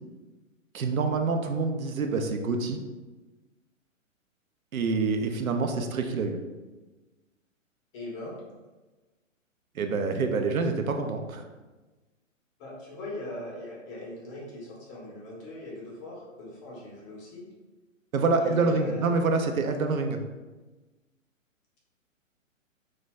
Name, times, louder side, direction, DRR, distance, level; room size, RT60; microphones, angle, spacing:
voice 1, 0.7-2.8 4.7-6.4 9.8-11.4 18.1-20.2, right 4 dB, 90° right, 5 dB, 0.5 m, -26 dB
voice 2, 7.9-8.3 12.6-17.4 18.4-19.2, left 1 dB, 25° left, -4 dB, 0.6 m, -40 dB
2.6 x 2.2 x 3.2 m, 1.2 s
figure-of-eight pair, 120°, 40 cm